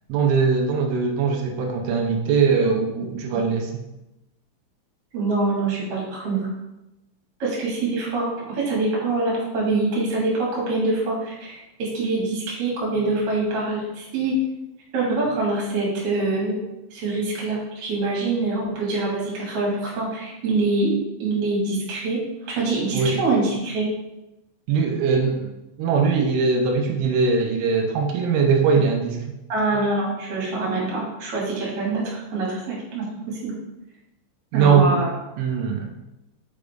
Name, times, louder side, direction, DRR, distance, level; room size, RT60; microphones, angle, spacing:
voice 1, 0.1-3.7 22.9-23.2 24.7-25.5 25.8-29.2 34.5-35.1 35.4-35.9, right 5 dB, 90° right, 2 dB, 3.2 m, -21 dB
voice 2, 5.1-6.5 7.4-14.4 14.9-16.6 16.9-23.9 29.5-33.5 34.5-35.1, right 3 dB, 40° right, -5 dB, 2.3 m, -25 dB
6.8 x 5.1 x 3.6 m, 0.95 s
omnidirectional pair, 5.5 m